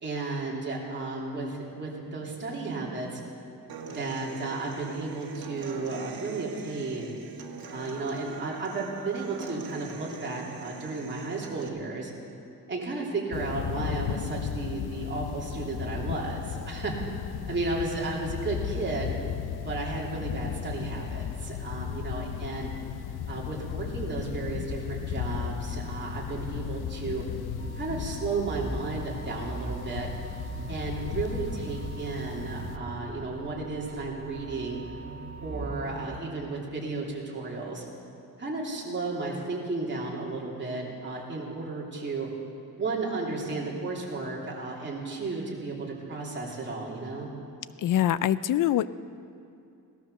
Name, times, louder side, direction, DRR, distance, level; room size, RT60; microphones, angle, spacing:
voice 1, 0.0-3.2 3.9-7.1 7.7-12.1 12.7-16.9 17.5-19.1 19.6-22.7 23.3-27.2 27.7-30.1 30.7-34.8 35.4-37.9 38.4-42.3 42.8-47.3, right 3 dB, 30° right, -3 dB, 2.9 m, -33 dB
Human voice / Acoustic guitar, 3.7-11.7, right 4 dB, 70° right, 1.6 m, -42 dB
sound 1, 13.3-32.8, left 9 dB, 85° left, 0.8 m, -35 dB
sound 2, 27.6-36.2, right 3 dB, 50° right, 1.4 m, -40 dB
voice 2, 47.8-48.9, left 12 dB, 60° left, 16 dB, 0.5 m, -24 dB
17.5 x 12.5 x 6.6 m, 2.5 s
wide cardioid pair, 140°, 37 cm